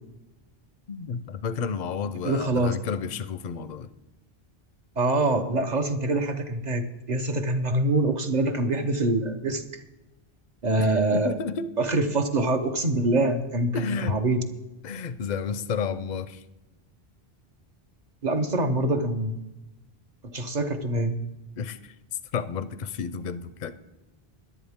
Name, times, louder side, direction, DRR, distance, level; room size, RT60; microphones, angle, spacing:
voice 1, 0.9-3.9 10.8-11.7 13.7-14.2 14.8-16.4 21.6-21.9 22.3-23.7, left 6 dB, 50° left, 13 dB, 0.6 m, -31 dB
voice 2, 2.2-2.8 5.0-9.6 10.6-11.4 11.8-14.4 18.2-19.4 20.2-21.1, right 2 dB, 45° right, 6 dB, 1.0 m, -25 dB
18.0 x 11.0 x 3.6 m, 1.0 s
omnidirectional pair, 1.1 m